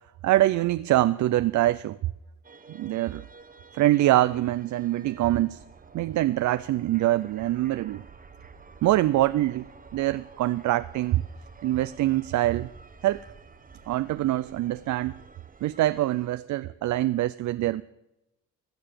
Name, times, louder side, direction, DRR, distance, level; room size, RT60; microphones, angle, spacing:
voice 1, 0.2-2.0 2.7-3.2 3.7-5.6 5.9-8.0 8.8-11.2 11.6-12.7 13.0-13.2 13.9-15.2 15.6-17.8, right 15 dB, 70° right, 0.5 m, -24 dB
sound 1, 2.4-16.3, right 5 dB, 30° right, 1.1 m, -50 dB
16.0 x 9.7 x 6.8 m
cardioid pair, 90°, 30 cm